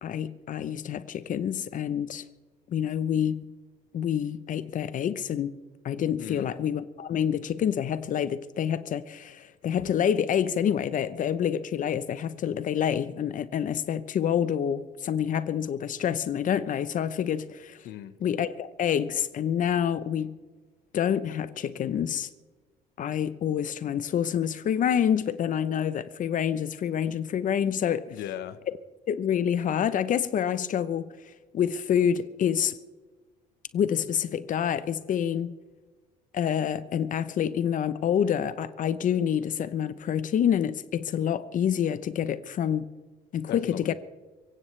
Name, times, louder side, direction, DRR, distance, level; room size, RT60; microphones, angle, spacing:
voice 1, 0.0-2.2 2.7-3.4 3.9-5.6 5.8-17.8 18.2-20.4 20.9-22.3 23.0-28.1 29.1-31.2 31.5-32.8 33.7-35.6 36.3-42.9 43.3-43.9, left 9 dB, 50° left, 0.8 m, -27 dB
voice 2, 17.8-18.2 28.1-28.6 43.5-43.9, left 12 dB, 80° left, 1.1 m, -37 dB
24.0 x 16.0 x 3.3 m
cardioid pair, 110°, 17 cm